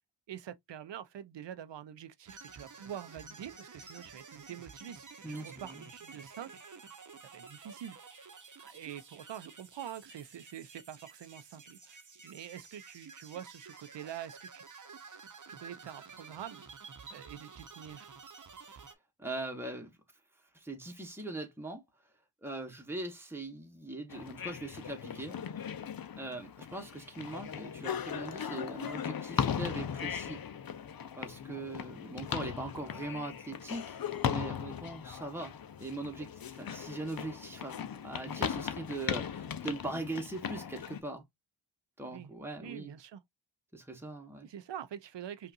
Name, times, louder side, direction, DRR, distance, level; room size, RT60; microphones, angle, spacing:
voice 1, 0.3-6.5 7.3-8.0 8.6-12.0 12.2-14.6 15.5-16.6 17.1-18.1 42.1-42.3 42.6-43.2 44.4-45.5, right 10 dB, 70° right, 0.6 m, -45 dB
sound 1, 2.3-18.9, right 5 dB, 40° right, 0.9 m, -51 dB
voice 2, 5.2-5.8 19.2-19.9 20.5-21.8 22.4-25.4 26.2-30.4 31.1-34.0 34.3-41.2 42.0-42.9 43.7-44.5, right 2 dB, 5° right, 1.1 m, -41 dB
sound 2, 24.1-41.0, left 8 dB, 50° left, 0.7 m, -38 dB
5.4 x 2.5 x 2.5 m
cardioid pair, 70°, 45 cm